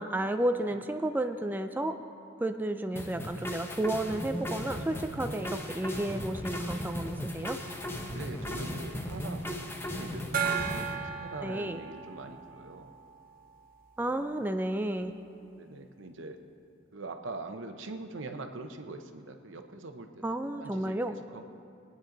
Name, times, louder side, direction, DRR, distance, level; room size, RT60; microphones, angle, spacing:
voice 1, 0.0-2.0 2.4-7.6 11.4-11.8 14.0-15.1 20.2-21.2, right 1 dB, 10° right, 7 dB, 0.4 m, -32 dB
sound 1, 2.9-10.9, left 1 dB, 15° left, 0.8 m, -37 dB
voice 2, 8.1-12.9 15.6-16.4 16.9-20.1 20.6-21.4, right 2 dB, 85° right, 6 dB, 0.8 m, -43 dB
Gong, 10.3-13.6, right 7 dB, 50° right, 0.8 m, -35 dB
21.0 x 9.3 x 3.9 m, 2.6 s
head